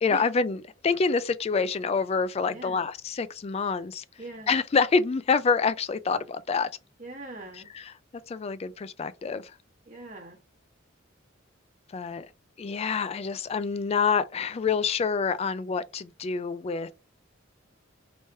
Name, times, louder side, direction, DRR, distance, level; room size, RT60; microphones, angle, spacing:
voice 1, 0.0-4.0 4.5-6.7 7.7-7.9 8.3-9.5 11.9-12.3 12.6-16.9, left 5 dB, 30° left, 0.3 m, -27 dB
voice 2, 2.5-2.8 4.2-4.5 7.0-7.7 9.9-10.4, right 2 dB, 40° right, 1.3 m, -41 dB
3.1 x 2.9 x 3.3 m
head